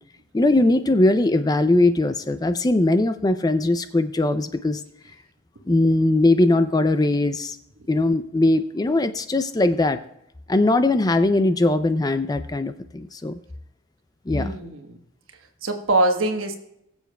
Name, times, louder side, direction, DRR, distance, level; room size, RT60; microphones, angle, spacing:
voice 1, 0.3-4.8 5.7-7.6 7.9-10.0 10.5-13.4 14.3-14.5, left 2 dB, 20° left, 11 dB, 0.4 m, -20 dB
voice 2, 14.3-15.0 15.6-16.6, right 2 dB, 85° right, 5 dB, 1.2 m, -23 dB
21.0 x 7.0 x 2.2 m, 0.80 s
head